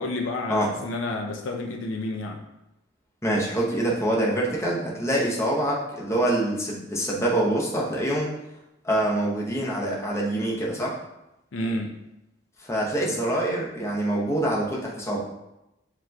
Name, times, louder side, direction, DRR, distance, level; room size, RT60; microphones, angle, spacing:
voice 1, 0.0-2.4 11.5-12.0, left 2 dB, 80° left, 2 dB, 0.5 m, -30 dB
voice 2, 3.2-8.3 8.8-11.0 12.6-15.2, right 1 dB, 15° left, -4 dB, 0.8 m, -25 dB
7.5 x 3.0 x 2.3 m, 0.92 s
head